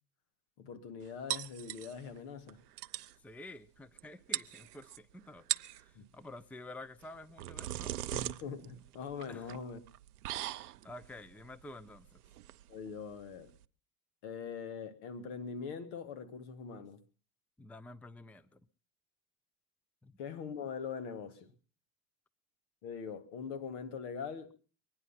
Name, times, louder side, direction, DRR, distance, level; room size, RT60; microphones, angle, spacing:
voice 1, 0.6-2.6 5.9-6.0 8.1-9.8 12.7-13.5 14.2-17.0 20.2-21.5 22.8-24.6, left 6 dB, 65° left, 2.6 m, -42 dB
sound 1, 1.3-2.2 2.5-2.6 2.8-3.1 4.0-4.1 4.3-5.0 5.4-5.8 7.0-13.6, right 14 dB, 85° right, 0.7 m, -40 dB
voice 2, 3.2-7.9 9.3-9.5 10.8-12.1 17.6-18.6 20.0-20.2, left 2 dB, 5° left, 0.7 m, -50 dB
23.0 x 10.0 x 5.8 m
hypercardioid pair, 85°, 45 cm